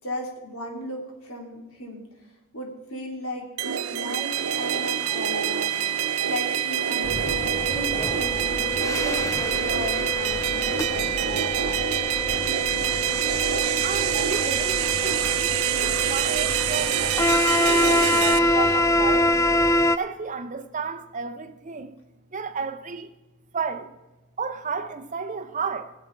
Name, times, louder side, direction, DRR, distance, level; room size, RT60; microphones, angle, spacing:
voice 1, 0.0-2.0 2.5-5.7 5.9-11.8, equal, 75° left, 3.1 m, -36 dB
sound 1, 3.6-18.4, right 10 dB, 70° right, 0.5 m, -26 dB
sound 2, 4.3-18.8, right 1 dB, 35° left, 3.3 m, -42 dB
sound 3, 7.0-20.0, left 1 dB, 15° left, 0.3 m, -25 dB
voice 2, 13.8-19.4 19.9-22.0 22.3-23.1 23.5-23.9 24.4-25.9, right 5 dB, 35° right, 0.7 m, -33 dB
19.0 x 7.3 x 4.5 m
head